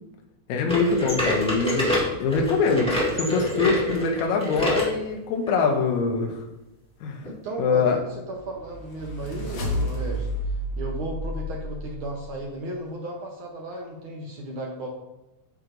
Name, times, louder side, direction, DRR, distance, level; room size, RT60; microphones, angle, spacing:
voice 1, 0.5-1.9 2.2-6.4 7.0-7.2 7.6-8.0, left 4 dB, 75° left, 2 dB, 2.1 m, -23 dB
sound 1, 0.7-4.9 5.5-5.6 6.3-6.4 7.2-7.3, left 1 dB, 5° left, 1.3 m, -26 dB
voice 2, 7.2-8.0 8.3-10.3 10.8-14.9, right 1 dB, 70° right, -1 dB, 1.2 m, -35 dB
sound 2, 8.3-12.3, equal, 55° left, 1.9 m, -31 dB
8.9 x 6.0 x 2.6 m, 0.96 s
omnidirectional pair, 3.4 m